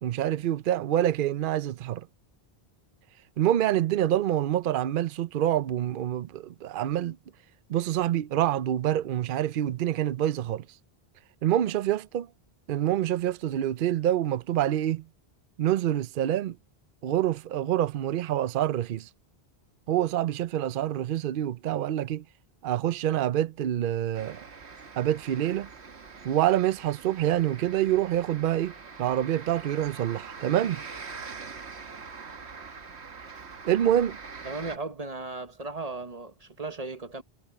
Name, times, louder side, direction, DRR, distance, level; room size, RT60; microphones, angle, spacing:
voice 1, 0.0-2.1 3.4-7.2 7.7-10.6 11.4-12.3 12.7-15.0 15.6-16.6 17.0-19.1 19.9-22.2 22.6-24.4 25.0-25.7 26.2-30.8 33.6-34.2, right 12 dB, 60° right, 0.7 m, -26 dB
sound 1, 24.1-34.8, right 5 dB, 85° right, 1.7 m, -44 dB
voice 2, 34.4-37.2, right 3 dB, 35° right, 1.4 m, -36 dB
omnidirectional pair, 1.1 m